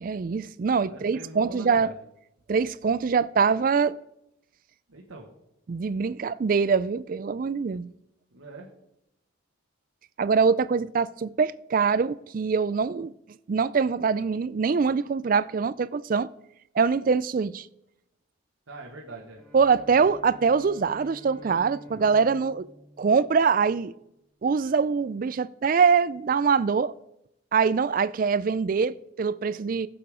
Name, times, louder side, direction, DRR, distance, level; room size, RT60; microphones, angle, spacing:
voice 1, 0.0-1.9 2.5-4.0 5.7-7.9 10.2-13.1 13.5-16.3 16.7-17.7 19.5-22.7 23.0-23.9 24.4-26.9 27.5-29.9, right 5 dB, 40° right, 0.3 m, -24 dB
voice 2, 0.9-2.0 4.9-5.3 8.3-8.7 18.7-19.4 19.9-20.1 22.1-22.2, right 2 dB, 90° right, 1.5 m, -43 dB
Bowed string instrument, 19.3-23.9, equal, 5° left, 3.1 m, -49 dB
15.5 x 6.9 x 5.0 m
head